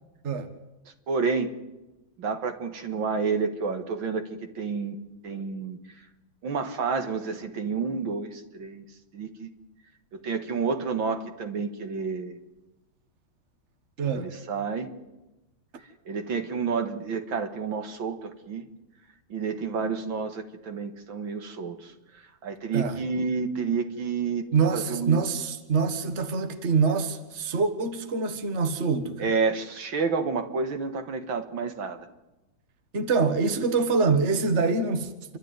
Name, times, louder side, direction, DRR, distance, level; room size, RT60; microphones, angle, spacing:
voice 1, 1.1-1.5 2.2-5.0 5.2-5.8 6.4-8.8 9.1-9.5 10.1-12.4 14.1-14.9 16.1-18.7 19.3-21.9 22.4-24.5 24.7-25.2 29.2-32.0, right 5 dB, 70° right, 2.3 m, -29 dB
voice 2, 14.0-14.3 22.7-23.0 24.5-29.3 32.9-35.4, right 4 dB, 35° right, 1.8 m, -25 dB
28.5 x 12.5 x 9.4 m
omnidirectional pair, 2.2 m